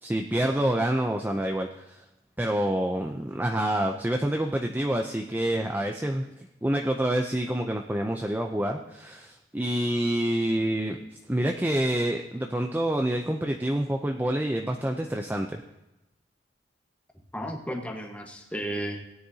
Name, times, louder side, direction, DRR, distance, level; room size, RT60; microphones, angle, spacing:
voice 1, 0.0-2.0 2.4-6.3 6.6-11.0 11.3-15.6, right 1 dB, 10° right, 3 dB, 0.5 m, -27 dB
voice 2, 17.3-19.0, equal, 5° left, 2 dB, 1.3 m, -33 dB
17.5 x 9.7 x 2.8 m, 0.97 s
head